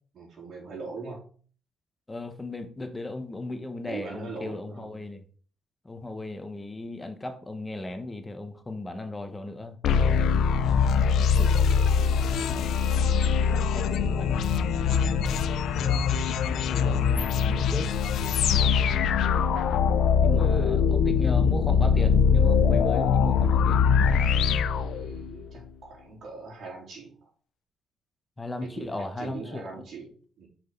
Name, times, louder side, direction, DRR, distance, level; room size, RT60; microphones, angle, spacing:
voice 1, 0.1-1.2 3.9-5.0 24.8-27.3 28.6-30.5, right 4 dB, 60° right, -3 dB, 3.6 m, -41 dB
voice 2, 2.1-5.2 5.8-11.5 12.4-15.0 15.8-17.9 20.2-23.8 28.4-29.7, left 2 dB, 15° left, 7 dB, 1.2 m, -37 dB
sound 1, 9.8-25.5, left 6 dB, 75° left, 0.5 m, -23 dB
6.1 x 5.0 x 3.9 m, 0.43 s
cardioid pair, 90°, 0 cm